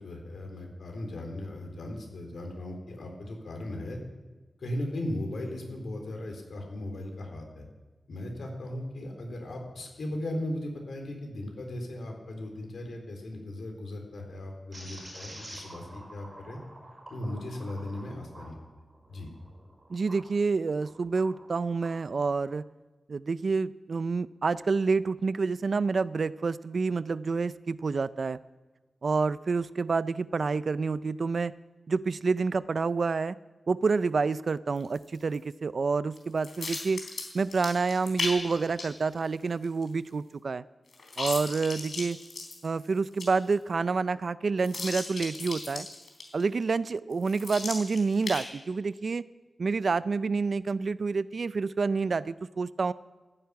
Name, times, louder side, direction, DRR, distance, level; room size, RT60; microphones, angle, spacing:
voice 1, 0.0-4.0 4.6-7.6 8.1-16.6 17.1-18.6 19.1-19.3, left 1 dB, 75° left, 2 dB, 4.0 m, -37 dB
sound 1, 14.7-20.3 20.8-22.0, right 1 dB, 25° right, 6.0 m, -48 dB
voice 2, 19.9-22.6 23.1-28.4 29.0-31.5 31.9-33.4 33.7-37.1 37.3-40.6 41.2-42.2 42.6-45.9 46.3-49.2 49.6-52.9, right 4 dB, 55° right, 16 dB, 0.4 m, -28 dB
sound 2, 34.8-35.3 36.1-38.9 39.2-39.3 39.6-40.1 40.9-42.9 43.2-43.3 43.5-43.6 44.6-46.4 47.1-48.4, left 3 dB, 60° left, 3.9 m, -36 dB
14.0 x 10.5 x 8.6 m, 1.2 s
wide cardioid pair, 145°, 0 cm